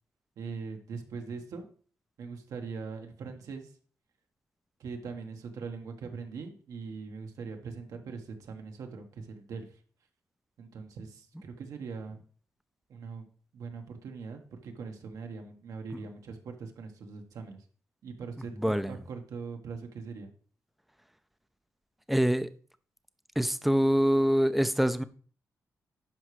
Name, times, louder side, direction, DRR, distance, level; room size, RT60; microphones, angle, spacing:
voice 1, 0.4-1.7 2.2-3.7 4.8-9.8 10.6-12.2 12.9-13.3 13.5-17.6 18.0-20.3, right 5 dB, 80° right, 1.3 m, -41 dB
voice 2, 18.6-18.9 22.1-22.5 23.4-25.0, equal, ahead, 0.5 m, -25 dB
11.5 x 4.9 x 3.2 m
cardioid pair, 90°, 6 cm